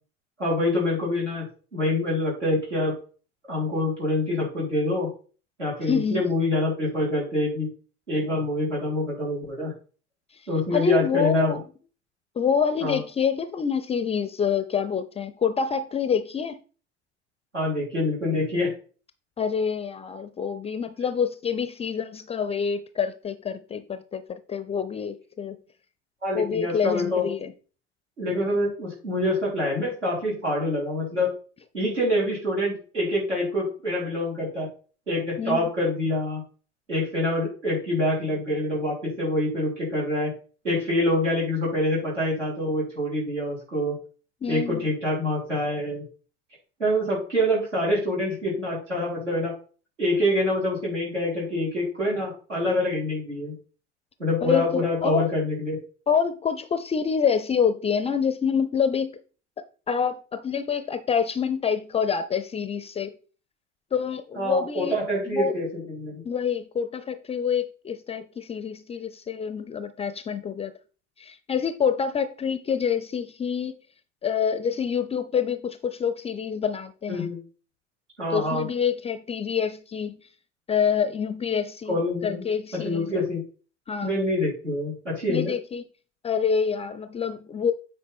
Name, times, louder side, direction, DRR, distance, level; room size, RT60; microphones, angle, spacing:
voice 1, 0.4-1.5 1.7-2.9 3.4-5.1 5.6-7.7 8.1-9.7 10.5-11.5 12.8-13.0 17.5-18.7 26.2-27.3 28.2-31.3 31.7-34.7 35.1-36.4 36.9-40.3 40.6-43.9 44.5-46.0 46.8-49.5 50.0-53.5 54.2-55.8 64.3-66.2 77.1-77.4 78.2-78.7 81.9-82.4 82.7-83.4 84.0-85.5, left 1 dB, 80° right, 4.5 m, -26 dB
voice 2, 5.9-6.2 10.3-11.6 12.4-16.6 19.4-25.6 26.3-27.5 35.4-35.7 44.4-44.9 54.4-55.3 56.1-59.2 59.6-63.1 63.9-65.0 65.3-65.5 66.2-70.7 71.2-73.8 74.2-77.3 78.3-80.2 80.7-83.2 83.9-84.2 85.3-85.8 86.2-87.7, left 7 dB, 15° left, 0.5 m, -27 dB
8.9 x 4.6 x 4.4 m
figure-of-eight pair, 75°, 36 cm